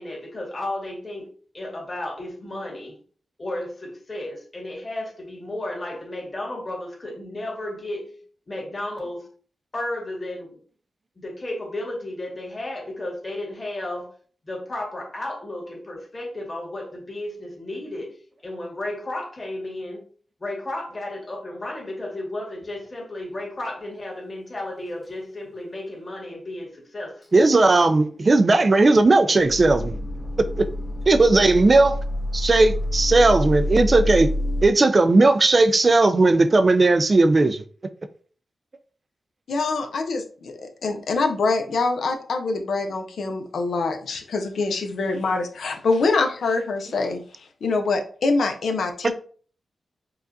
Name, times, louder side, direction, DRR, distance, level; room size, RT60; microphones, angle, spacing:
voice 1, 0.0-3.0 3.4-8.2 8.5-9.3 9.7-10.6 11.2-14.1 14.4-20.1 20.4-27.2, left 1 dB, 35° left, 1.7 m, -33 dB
sound 1, 25.5-25.6 27.2-27.3 27.8-34.7, left 1 dB, 5° right, 0.9 m, -28 dB
voice 2, 27.3-30.0 30.6-30.7 31.1-32.0 32.3-34.3 34.6-37.6, right 2 dB, 40° right, 0.4 m, -17 dB
voice 3, 39.5-47.2 47.6-49.1, left 3 dB, 80° left, 0.6 m, -24 dB
4.7 x 2.4 x 2.6 m
cardioid pair, 65°, 0 cm